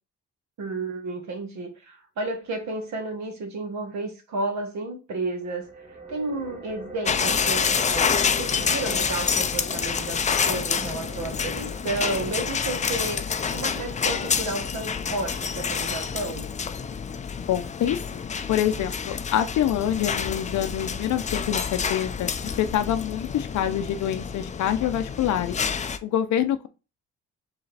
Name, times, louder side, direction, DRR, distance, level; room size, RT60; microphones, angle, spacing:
voice 1, 0.6-5.7 6.1-16.4, right 2 dB, 65° right, 1.4 m, -32 dB
sound 1, 5.3-16.7, right 2 dB, 25° right, 1.8 m, -44 dB
sound 2, 7.1-26.0, left 6 dB, 25° left, 0.4 m, -28 dB
voice 2, 17.5-18.2 18.5-25.6 26.0-26.7, left 10 dB, 70° left, 0.6 m, -26 dB
4.7 x 3.1 x 3.3 m
cardioid pair, 90°, 30 cm